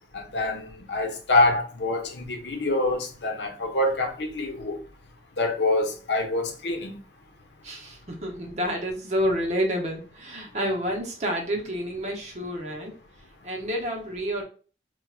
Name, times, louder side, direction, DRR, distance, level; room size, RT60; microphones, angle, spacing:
voice 1, 0.1-4.8 5.4-6.9, left 2 dB, 85° left, 0.7 m, -25 dB
voice 2, 7.6-12.9 13.4-14.4, equal, 40° right, 0.7 m, -29 dB
4.5 x 2.2 x 2.3 m
head